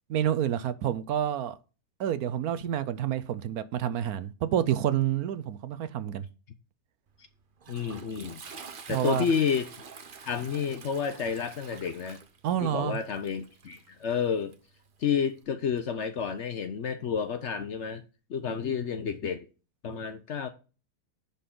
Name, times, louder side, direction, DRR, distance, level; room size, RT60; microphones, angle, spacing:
voice 1, 0.1-1.6 2.0-6.3 8.9-9.2 12.4-13.0, right 10 dB, 75° right, 1.1 m, -28 dB
Toilet flush, 7.1-15.4, right 5 dB, 45° right, 0.8 m, -48 dB
voice 2, 7.7-8.4 8.9-9.7 10.2-12.2 12.6-14.5 15.0-18.0 18.3-19.5 19.8-20.5, left 7 dB, 55° left, 0.9 m, -30 dB
10.5 x 4.3 x 3.8 m
omnidirectional pair, 1.7 m